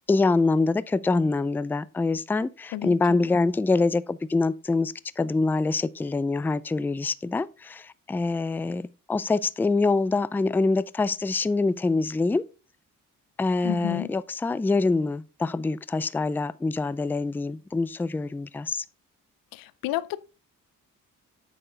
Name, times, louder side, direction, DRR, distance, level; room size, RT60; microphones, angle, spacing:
voice 1, 0.1-12.4 13.4-18.8, left 3 dB, 5° left, 0.3 m, -25 dB
voice 2, 2.7-3.2 13.6-14.1 19.5-20.2, left 15 dB, 90° left, 0.5 m, -31 dB
8.0 x 6.0 x 3.8 m
cardioid pair, 70°, 33 cm